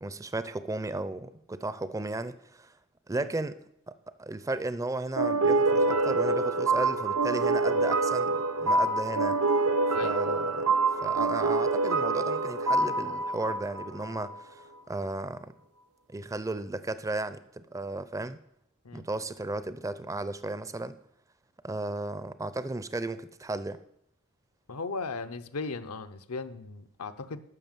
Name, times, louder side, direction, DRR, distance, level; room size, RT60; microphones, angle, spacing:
voice 1, 0.0-2.7 3.1-3.6 3.9-9.4 10.0-10.7 11.0-15.5 16.1-18.4 18.9-21.0 21.6-23.8, right 2 dB, 15° right, 0.5 m, -35 dB
sound 1, 5.2-14.4, right 3 dB, 80° right, 0.8 m, -26 dB
voice 2, 9.9-10.2 18.8-19.0 24.7-27.4, left 4 dB, 75° left, 0.8 m, -37 dB
12.5 x 6.0 x 7.4 m
head